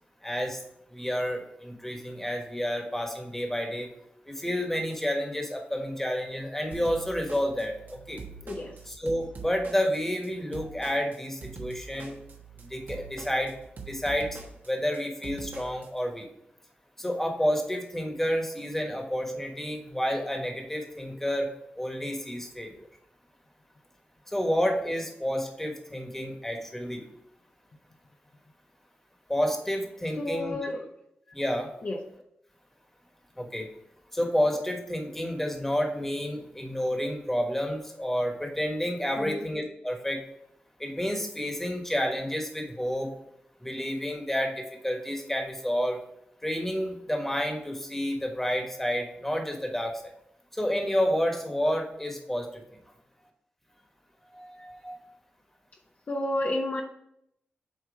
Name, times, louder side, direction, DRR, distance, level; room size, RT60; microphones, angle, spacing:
voice 1, 0.2-0.6 0.9-3.9 4.3-8.2 8.9-12.2 12.7-13.5 13.9-14.4 14.7-16.2 17.0-21.5 21.8-22.7 24.3-27.0 29.3-30.7 31.3-31.7 33.4-33.7 34.1-40.2 40.8-43.1 43.6-46.0 46.4-49.9 50.6-52.5 54.3-55.0, equal, 10° left, 2 dB, 1.4 m, -30 dB
sound 1, 6.7-15.9, right 4 dB, 60° right, 1.2 m, -44 dB
voice 2, 30.2-30.8 31.8-32.0 39.2-39.4 56.1-56.8, left 1 dB, 45° left, 1 dB, 0.8 m, -30 dB
8.4 x 3.1 x 4.9 m, 0.75 s
wide cardioid pair, 90°, 4 cm